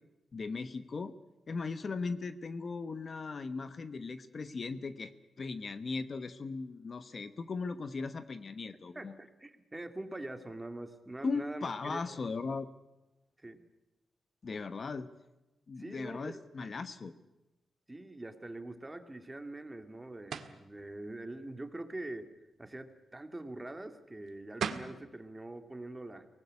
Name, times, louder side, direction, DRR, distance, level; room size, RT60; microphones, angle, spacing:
voice 1, 0.3-1.1 1.5-5.1 5.4-9.1 11.2-12.7 14.4-15.1 15.7-17.1, left 4 dB, 45° left, 12 dB, 1.1 m, -38 dB
voice 2, 8.9-12.2 13.4-13.6 15.8-16.3 16.6-16.7 17.9-26.3, right 2 dB, 15° right, 8 dB, 2.1 m, -44 dB
sound 1, 20.3-20.6 24.3-24.4 24.6-25.0, right 7 dB, 75° right, 1.7 m, -36 dB
24.0 x 19.0 x 9.7 m, 0.99 s
wide cardioid pair, 115°, 0 cm